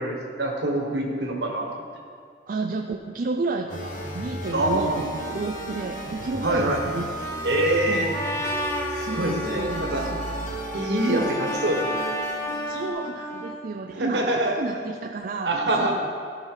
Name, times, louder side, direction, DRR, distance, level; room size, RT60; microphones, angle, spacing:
voice 1, 0.0-1.8 4.5-5.0 6.4-6.8 7.4-8.1 9.0-10.0 10.7-12.1 13.9-14.5 15.4-16.0, right 1 dB, 65° right, 0 dB, 1.5 m, -25 dB
voice 2, 2.5-7.2 7.9-8.2 9.0-10.4 11.0-11.4 12.5-16.0, right 3 dB, 50° right, 3 dB, 0.4 m, -31 dB
sound 1, 3.7-12.9, right 1 dB, 45° left, 1.2 m, -34 dB
Trumpet, 8.1-13.6, left 1 dB, 15° left, 0.6 m, -32 dB
15.5 x 5.7 x 3.9 m, 2.2 s
head